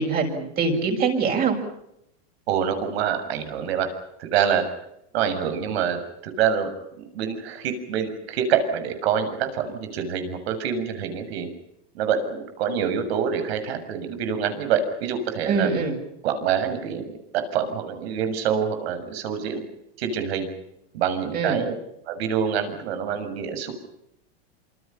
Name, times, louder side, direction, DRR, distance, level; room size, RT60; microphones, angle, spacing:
voice 1, 0.0-1.6 15.4-15.9 21.3-21.6, right 5 dB, 30° right, 2 dB, 6.8 m, -23 dB
voice 2, 2.5-3.9 4.2-4.6 5.1-6.7 7.0-11.5 11.9-15.7 16.2-19.6 20.0-20.5 20.9-21.7 22.1-23.9, right 7 dB, 75° right, 8 dB, 7.1 m, -26 dB
27.5 x 27.5 x 5.7 m, 0.79 s
supercardioid pair, 140°, 32 cm